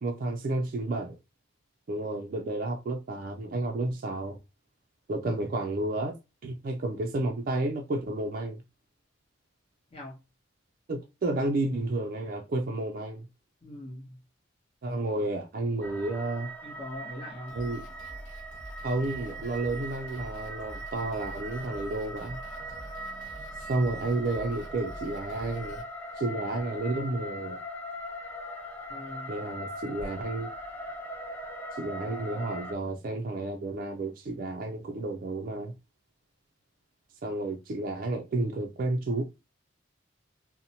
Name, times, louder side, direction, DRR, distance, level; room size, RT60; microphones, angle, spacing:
voice 1, 0.0-1.2 1.9-4.4 5.1-6.2 6.4-8.6 10.9-13.3 14.8-16.5 17.5-17.8 18.8-22.4 23.7-25.8 26.2-27.6 29.3-30.5 31.7-35.7 37.2-39.2, right 2 dB, 50° right, 0.4 m, -31 dB
voice 2, 13.6-14.2 16.6-17.6 28.9-29.3, left 1 dB, 30° left, 0.8 m, -42 dB
sound 1, 15.8-32.7, right 1 dB, 10° left, 0.5 m, -40 dB
Drum kit, 17.5-25.8, equal, 75° left, 0.9 m, -45 dB
2.6 x 2.1 x 2.7 m
head